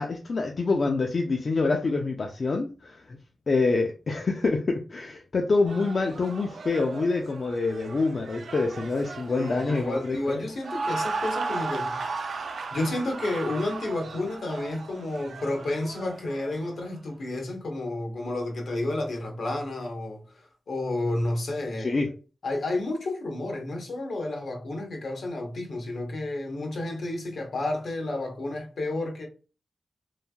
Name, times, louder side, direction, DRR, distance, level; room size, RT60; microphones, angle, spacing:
voice 1, 0.0-3.2 3.5-10.4 21.8-22.1, left 3 dB, 55° left, 0.4 m, -26 dB
sound 1, 5.7-16.9, right 4 dB, 75° right, 0.4 m, -36 dB
voice 2, 9.3-12.0 12.7-21.9 22.4-29.3, left 2 dB, 75° left, 0.8 m, -31 dB
3.1 x 2.4 x 2.2 m
wide cardioid pair, 85°, 0 cm